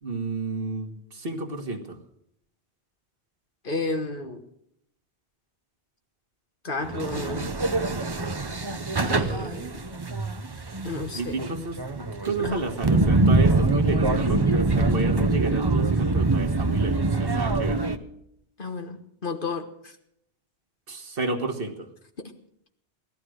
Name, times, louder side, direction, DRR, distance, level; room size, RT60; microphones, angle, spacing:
voice 1, 0.0-2.0 11.1-17.8 20.9-21.9, right 3 dB, 55° right, 6 dB, 1.7 m, -31 dB
voice 2, 3.6-4.4 6.6-7.5 9.0-9.8 10.8-11.4 12.4-12.6 18.6-20.0, left 3 dB, 50° left, 6 dB, 1.5 m, -32 dB
sound 1, 6.8-18.0, right 3 dB, 25° right, 0.7 m, -24 dB
18.0 x 12.0 x 6.3 m, 0.74 s
omnidirectional pair, 1.2 m